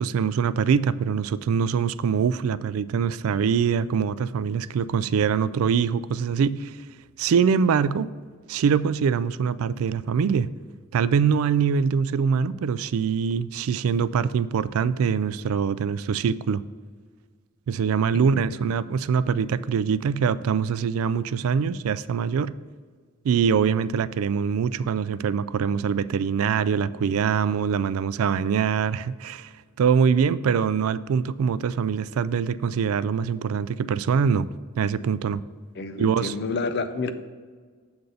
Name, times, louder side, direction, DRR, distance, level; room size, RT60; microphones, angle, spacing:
voice 1, 0.0-6.7 7.2-8.1 8.5-10.5 10.9-16.6 17.7-22.5 23.2-29.5 29.8-34.5 34.8-35.4 36.0-36.3, right 6 dB, 80° right, 17 dB, 0.3 m, -23 dB
voice 2, 18.1-18.8 35.7-37.1, left 3 dB, 50° left, 10 dB, 0.5 m, -30 dB
8.0 x 3.9 x 6.8 m, 1.5 s
head